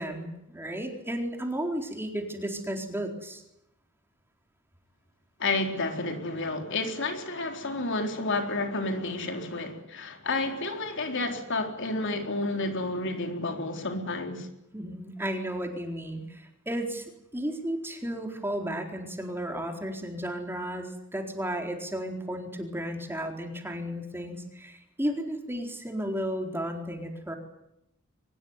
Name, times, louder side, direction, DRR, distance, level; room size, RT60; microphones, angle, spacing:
voice 1, 0.0-3.4 14.7-27.4, equal, 10° right, 4.2 m, -33 dB
voice 2, 5.4-14.5, left 2 dB, 60° left, 4.0 m, -30 dB
24.0 x 20.5 x 9.7 m
head